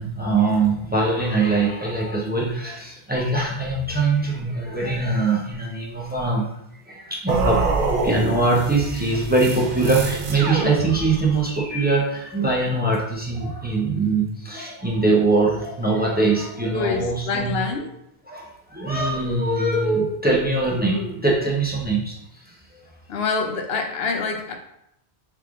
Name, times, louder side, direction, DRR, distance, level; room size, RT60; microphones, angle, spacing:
voice 1, 0.0-6.5 6.9-17.6 18.3-22.1 22.4-22.8, right 3 dB, 10° right, -4 dB, 0.7 m, -22 dB
sound 1, 7.3-11.4, right 4 dB, 60° right, 0.7 m, -25 dB
voice 2, 16.7-17.9 23.1-24.5, left 4 dB, 70° left, 4 dB, 0.8 m, -26 dB
3.6 x 3.3 x 3.6 m, 0.78 s
omnidirectional pair, 1.1 m